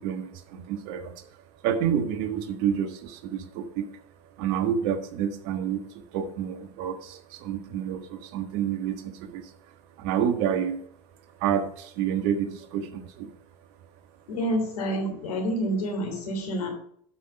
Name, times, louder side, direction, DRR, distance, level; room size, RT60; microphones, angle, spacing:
voice 1, 0.0-1.4 1.6-4.0 4.4-9.5 10.0-10.8 11.4-13.3, right 8 dB, 65° right, 8 dB, 1.5 m, -29 dB
voice 2, 14.3-16.7, equal, 85° left, 3 dB, 3.3 m, -28 dB
12.0 x 5.7 x 5.0 m, 0.66 s
hypercardioid pair, 90°, 19 cm